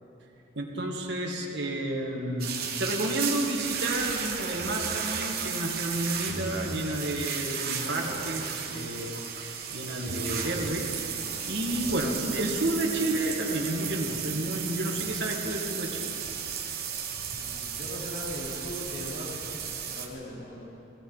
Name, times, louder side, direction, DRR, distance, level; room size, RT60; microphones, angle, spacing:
voice 1, 0.6-11.2 11.5-16.1, right 1 dB, 70° right, -1 dB, 2.0 m, -31 dB
sound 1, 2.4-20.1, right 7 dB, 55° right, 1.3 m, -34 dB
sound 2, 4.5-5.2 6.3-6.8 8.1-8.5 8.8-8.9 10.1-11.1 11.5-12.3, equal, 15° right, 2.0 m, -42 dB
voice 2, 17.3-20.6, left 1 dB, 60° left, -7 dB, 4.0 m, -40 dB
18.0 x 16.5 x 4.0 m, 2.8 s
head